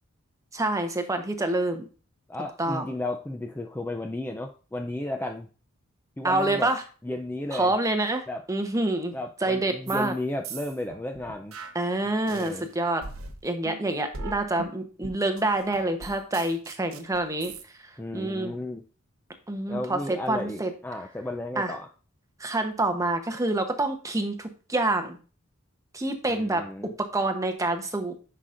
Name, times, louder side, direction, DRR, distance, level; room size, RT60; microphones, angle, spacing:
voice 1, 0.5-1.9 2.6-2.9 6.2-6.8 7.5-9.1 9.4-10.1 11.7-13.0 13.4-17.5 18.1-18.5 19.5-20.7 21.6-21.7 22.4-25.2 25.9-26.6 27.0-28.2, right 2 dB, 15° right, 6 dB, 0.9 m, -27 dB
voice 2, 2.3-5.5 6.2-6.7 7.0-7.7 8.3-8.4 9.1-11.5 12.3-12.7 18.0-18.8 19.7-21.9 26.3-27.0, left 1 dB, 10° left, 4 dB, 0.4 m, -33 dB
sound 1, 9.9-10.1 10.4-12.6 13.0-17.6, right 3 dB, 80° right, 0.8 m, -40 dB
9.8 x 5.8 x 2.5 m, 0.37 s
head